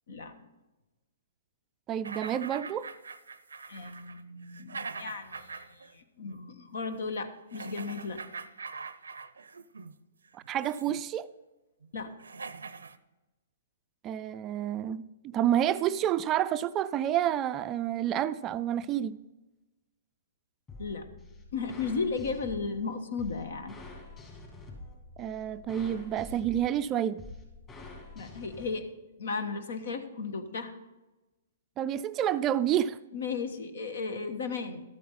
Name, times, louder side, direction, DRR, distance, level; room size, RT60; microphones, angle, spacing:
voice 1, 1.9-2.9 10.3-11.3 14.0-19.2 25.2-27.2 31.8-33.0, right 11 dB, 25° right, 13 dB, 0.3 m, -29 dB
sound 1, 2.0-5.9 6.2-6.4 7.5-9.9 10.4-11.0 11.8-11.9 12.2-13.0, right 4 dB, 90° right, 0.5 m, -43 dB
voice 2, 3.7-8.2 11.9-12.1 20.8-21.1 21.5-23.8 28.1-28.8 29.2-30.8 33.1-34.8, left 4 dB, 70° left, 9 dB, 1.3 m, -35 dB
sound 2, 20.7-28.7, left 2 dB, 20° left, 2.9 m, -47 dB
12.5 x 8.4 x 4.2 m, 1.1 s
hypercardioid pair, 130°, 0 cm